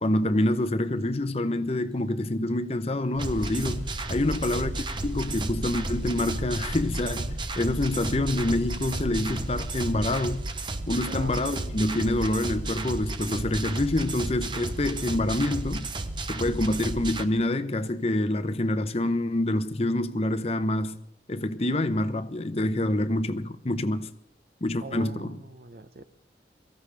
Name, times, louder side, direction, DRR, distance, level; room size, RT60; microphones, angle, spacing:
voice 1, 0.0-10.4 10.9-15.9 16.3-21.0 21.3-24.1 24.6-25.4, left 1 dB, 35° left, 0.7 m, -27 dB
sound 1, 3.1-10.1, left 1 dB, 80° left, 1.8 m, -39 dB
sound 2, 3.2-17.2, right 2 dB, 25° right, 0.8 m, -33 dB
voice 2, 10.9-11.4 24.8-26.0, right 3 dB, 60° right, 0.8 m, -43 dB
23.0 x 15.0 x 3.4 m
head